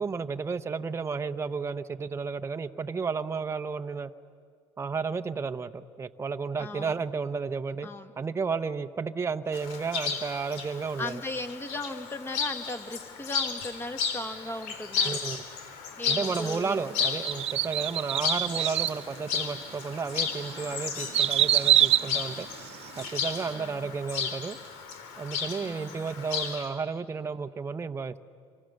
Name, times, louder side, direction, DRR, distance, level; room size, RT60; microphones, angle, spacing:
voice 1, 0.0-4.1 4.8-7.9 8.2-11.2 15.0-15.4 16.1-22.5 23.0-24.6 25.2-28.2, right 5 dB, 20° right, 8 dB, 0.9 m, -32 dB
voice 2, 6.6-7.0 7.8-8.1 11.0-15.2 16.0-17.1 23.5-23.9 25.6-26.0, left 2 dB, 20° left, 7 dB, 2.0 m, -37 dB
Chirp tweet, 9.5-26.6, left 6 dB, 75° left, 3.7 m, -34 dB
sound 1, 17.2-19.0 19.6-19.7 20.3-23.1 23.4-23.5, right 13 dB, 55° right, 1.0 m, -25 dB
28.0 x 24.5 x 6.6 m, 2.2 s
supercardioid pair, 90°, 13 cm